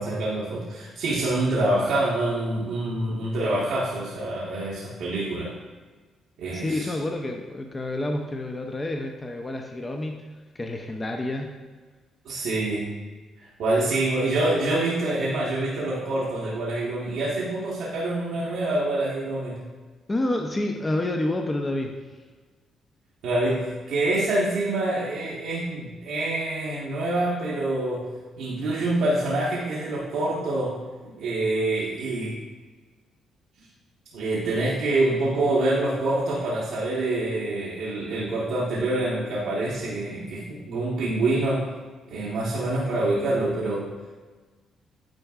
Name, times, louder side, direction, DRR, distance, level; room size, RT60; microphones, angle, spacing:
voice 1, 0.0-5.6 6.4-6.9 12.2-12.9 13.4-19.7 23.2-32.4 34.1-41.7 42.1-43.9, right 2 dB, 85° right, -7 dB, 1.1 m, -26 dB
voice 2, 6.5-10.3 10.5-11.5 20.1-22.1, left 1 dB, 25° left, 2 dB, 0.5 m, -29 dB
8.9 x 4.5 x 2.4 m, 1.4 s
cardioid pair, 90°, 0 cm